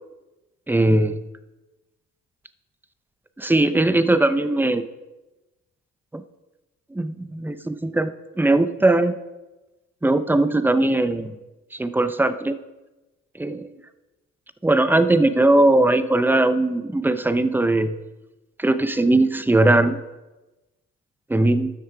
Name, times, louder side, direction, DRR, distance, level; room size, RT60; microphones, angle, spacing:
voice 1, 0.7-1.2 3.4-4.8 6.1-6.2 6.9-8.1 8.4-9.1 10.0-11.3 11.8-12.6 13.4-13.7 14.6-17.9 18.6-20.0 21.3-21.7, right 2 dB, 5° right, 11 dB, 0.6 m, -19 dB
12.5 x 6.5 x 4.8 m, 1.1 s
cardioid pair, 90°, 30 cm